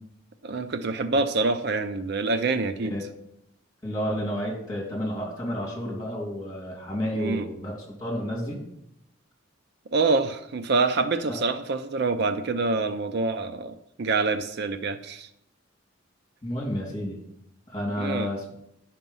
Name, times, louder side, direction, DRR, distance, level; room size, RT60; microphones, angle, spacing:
voice 1, 0.4-2.9 7.1-7.5 9.9-15.3 18.0-18.3, right 3 dB, 55° right, 11 dB, 0.5 m, -26 dB
voice 2, 3.8-8.6 11.3-11.4 16.4-17.2 17.7-18.5, equal, 20° left, -1 dB, 3.1 m, -31 dB
11.0 x 5.9 x 5.4 m, 0.79 s
head